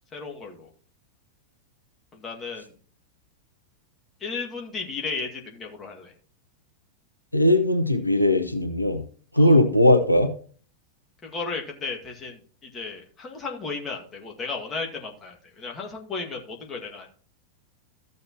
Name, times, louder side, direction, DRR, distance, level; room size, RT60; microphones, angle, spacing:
voice 1, 0.1-0.7 2.1-2.7 4.2-6.1 9.4-9.6 11.2-17.1, left 4 dB, 25° left, 1 dB, 2.1 m, -34 dB
voice 2, 7.3-9.0 9.3-10.3, left 1 dB, 85° left, 7 dB, 0.8 m, -19 dB
14.5 x 6.5 x 3.0 m, 0.43 s
figure-of-eight pair, 90°, 0 cm